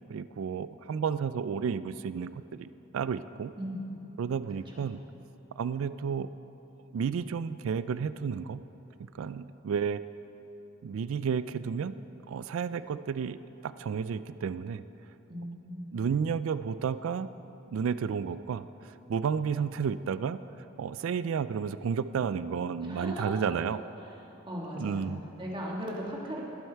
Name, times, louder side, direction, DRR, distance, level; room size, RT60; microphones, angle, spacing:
voice 1, 0.0-2.7 2.9-3.5 4.2-5.0 5.6-6.3 6.9-8.6 9.0-10.0 10.8-12.0 12.3-13.4 13.6-14.8 15.9-17.3 17.7-23.8 24.8-25.2, right 6 dB, 70° right, 14 dB, 0.3 m, -32 dB
voice 2, 3.6-4.0 4.7-4.8 15.3-15.9 22.8-23.3 24.3-26.4, equal, 25° right, -3 dB, 1.7 m, -38 dB
20.0 x 7.9 x 4.5 m, 3.0 s
head